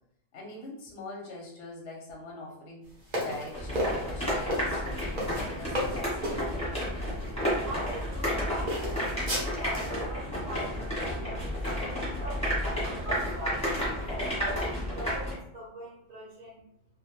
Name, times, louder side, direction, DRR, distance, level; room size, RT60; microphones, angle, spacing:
voice 1, 0.3-2.8 3.2-6.4 7.2-7.3 11.1-11.5, left 2 dB, 65° left, -1 dB, 0.8 m, -43 dB
sound 1, 3.1-6.4 7.2-7.3 7.9-8.3 8.7-10.0, equal, 45° right, 0.6 m, -33 dB
sound 2, 3.5-15.3, equal, 5° left, 0.8 m, -31 dB
voice 2, 7.6-12.5 12.9-16.6, right 1 dB, 75° right, -3 dB, 1.0 m, -42 dB
2.2 x 2.1 x 2.9 m, 0.74 s
omnidirectional pair, 1.4 m